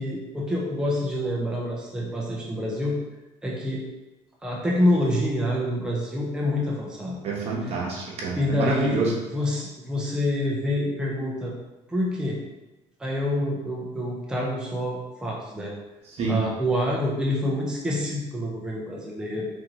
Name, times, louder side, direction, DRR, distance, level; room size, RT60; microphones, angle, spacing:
voice 1, 0.0-2.9 3.4-3.8 4.4-7.2 8.3-9.0 9.3-11.6 11.9-12.4 13.0-15.7 16.3-19.5, left 1 dB, 5° right, -4 dB, 0.8 m, -27 dB
voice 2, 7.2-9.1 16.1-16.4, right 3 dB, 55° right, -2 dB, 1.3 m, -27 dB
4.4 x 3.9 x 3.1 m, 1.1 s
cardioid pair, 115°, 12 cm